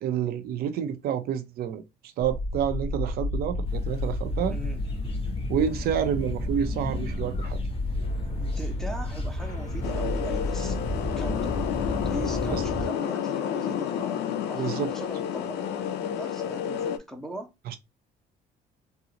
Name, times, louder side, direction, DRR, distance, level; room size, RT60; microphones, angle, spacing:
voice 1, 0.0-1.8 2.2-4.6 5.5-7.6 12.5-12.6 14.5-14.9 17.7-17.8, right 9 dB, 70° right, 0.5 m, -28 dB
sound 1, 2.2-12.9, left 1 dB, 50° left, 1.3 m, -31 dB
sound 2, 3.6-12.6, left 2 dB, 35° left, 0.9 m, -39 dB
voice 2, 4.5-4.8 8.3-10.8 11.2-17.5, right 1 dB, ahead, 0.7 m, -40 dB
sound 3, 9.8-17.0, left 9 dB, 85° left, 0.4 m, -30 dB
3.7 x 2.0 x 2.8 m
cardioid pair, 110°, 17 cm